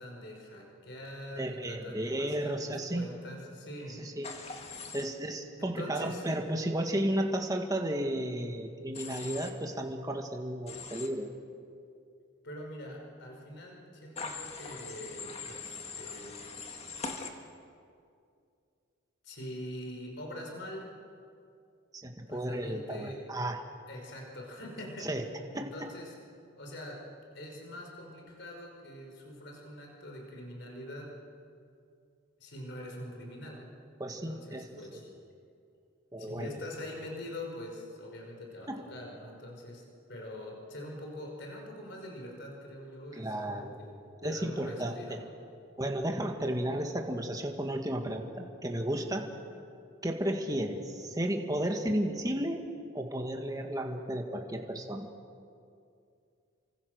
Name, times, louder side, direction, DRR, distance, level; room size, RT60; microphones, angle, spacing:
voice 1, 0.0-4.0 5.6-6.2 12.4-16.5 19.2-20.9 22.3-23.3 23.9-25.1 25.5-26.2 26.6-27.1 27.3-31.2 32.4-33.7 34.1-35.1 36.2-39.8 40.1-45.2 46.5-46.7, left 1 dB, 55° left, 0 dB, 5.2 m, -44 dB
voice 2, 1.3-3.1 4.0-4.3 4.9-11.3 22.0-23.6 25.0-25.3 25.5-25.9 34.0-34.7 36.1-36.6 38.7-38.8 43.1-43.8 44.2-45.2 45.8-49.3 50.0-52.6 52.9-55.1, right 1 dB, 15° right, 3 dB, 1.8 m, -33 dB
Human voice / Train, 4.2-5.0 8.9-9.5 10.7-11.1 14.2-17.3, left 4 dB, 30° left, 2.0 m, -41 dB
29.0 x 25.0 x 6.5 m, 2.4 s
head